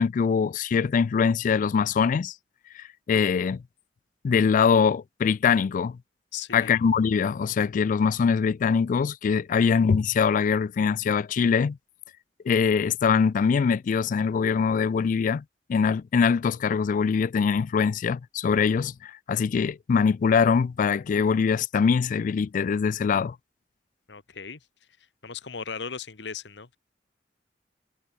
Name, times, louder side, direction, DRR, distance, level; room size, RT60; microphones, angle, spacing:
voice 1, 0.0-2.3 2.8-3.6 4.2-6.0 6.5-11.8 12.5-15.4 15.7-23.4, left 6 dB, 45° left, 0.3 m, -23 dB
voice 2, 6.3-6.8 24.1-24.6 25.2-26.8, left 6 dB, 75° left, 1.3 m, -37 dB
head